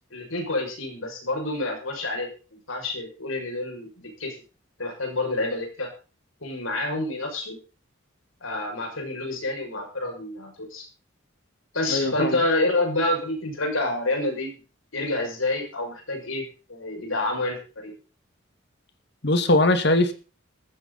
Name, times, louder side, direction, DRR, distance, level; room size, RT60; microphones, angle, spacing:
voice 1, 0.1-4.3 4.8-5.9 6.4-7.6 8.4-10.8 11.7-14.6 14.9-17.9, left 2 dB, 90° left, 2 dB, 6.5 m, -28 dB
voice 2, 11.9-12.4 19.2-20.1, left 2 dB, 60° left, 9 dB, 2.1 m, -20 dB
14.5 x 14.5 x 4.2 m, 0.35 s
head